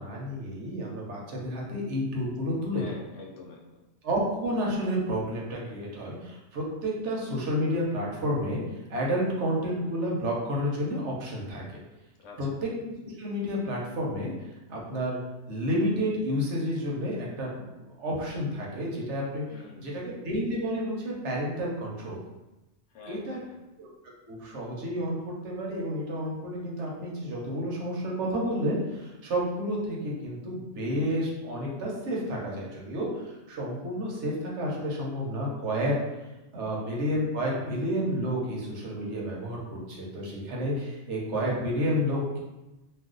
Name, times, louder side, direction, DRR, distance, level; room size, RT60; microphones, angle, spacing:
voice 1, 0.0-2.8 4.0-8.6 8.9-11.6 12.4-12.7 13.0-15.2 15.5-19.4 19.8-22.2 23.1-23.4 23.8-23.9 24.3-35.9 36.5-42.4, equal, 75° right, -3 dB, 1.0 m, -30 dB
voice 2, 2.7-3.8 12.2-12.4 19.5-20.1 22.9-23.6 36.6-36.9, left 3 dB, 75° left, 0 dB, 0.9 m, -47 dB
2.4 x 2.3 x 3.7 m, 1.0 s
omnidirectional pair, 1.2 m